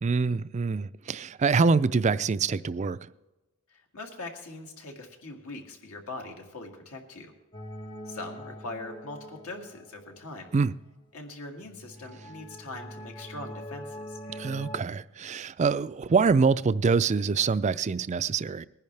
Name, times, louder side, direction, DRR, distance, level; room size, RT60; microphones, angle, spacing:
voice 1, 0.0-3.0 10.5-10.7 14.3-18.7, right 4 dB, 35° right, 0.4 m, -25 dB
voice 2, 3.7-7.3 8.1-10.5 11.1-14.2, left 2 dB, 75° left, 2.1 m, -41 dB
sound 1, 7.5-10.6 11.6-14.8, equal, 20° left, 0.7 m, -43 dB
20.0 x 10.5 x 3.3 m
head